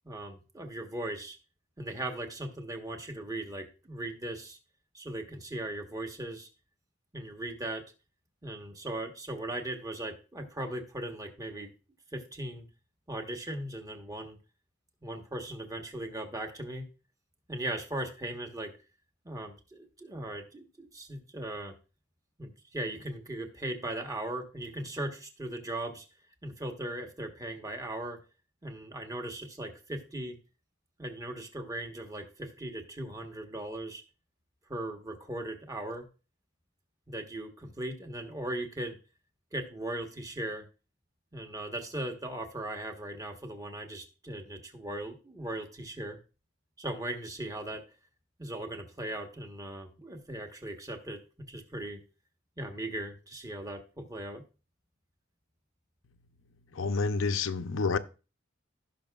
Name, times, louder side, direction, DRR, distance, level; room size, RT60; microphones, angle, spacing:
voice 1, 0.0-1.4 1.8-4.6 4.9-6.5 7.1-7.8 8.4-11.7 12.1-12.7 13.1-14.4 15.0-16.9 17.5-18.7 19.2-21.7 22.4-26.1 26.4-28.2 28.6-30.4 31.0-34.0 34.7-36.0 37.1-39.0 39.5-40.7 41.3-46.2 46.8-47.8 48.4-51.2 51.5-52.0 52.6-54.4, right 1 dB, 20° right, 1.2 m, -38 dB
voice 2, 56.8-58.0, left 4 dB, 75° left, 0.6 m, -28 dB
16.0 x 5.9 x 2.4 m
head